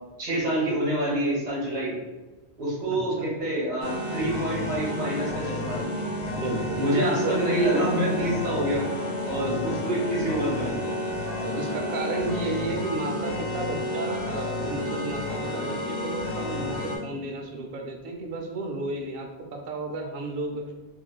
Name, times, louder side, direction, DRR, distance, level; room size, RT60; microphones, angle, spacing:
voice 1, 0.2-2.0 2.6-5.9 6.7-8.9 9.2-10.9, right 1 dB, 40° right, -6 dB, 1.1 m, -27 dB
sound 1, 3.8-17.0, left 1 dB, 50° left, 0.7 m, -31 dB
voice 2, 6.3-6.8 7.2-7.3 9.4-9.8 11.4-20.7, right 2 dB, 65° right, 2 dB, 0.7 m, -33 dB
3.1 x 2.7 x 2.2 m, 1.2 s
omnidirectional pair, 1.1 m